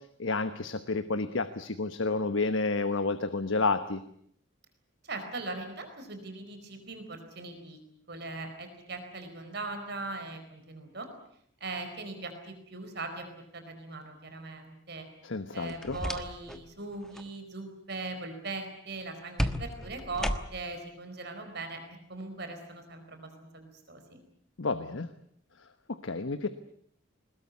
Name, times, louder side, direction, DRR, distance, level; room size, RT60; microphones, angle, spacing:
voice 1, 0.2-4.0 15.2-16.0 24.6-25.1 25.9-26.5, left 3 dB, 75° left, 10 dB, 1.1 m, -30 dB
voice 2, 5.0-7.8 8.1-11.1 11.6-13.3 13.5-15.1 15.5-21.8 22.1-24.2, right 3 dB, 55° right, 6 dB, 4.6 m, -40 dB
sound 1, 15.6-16.6 16.9-17.3 19.4-20.8, equal, 5° left, 1.3 m, -34 dB
22.0 x 20.5 x 9.6 m, 0.68 s
head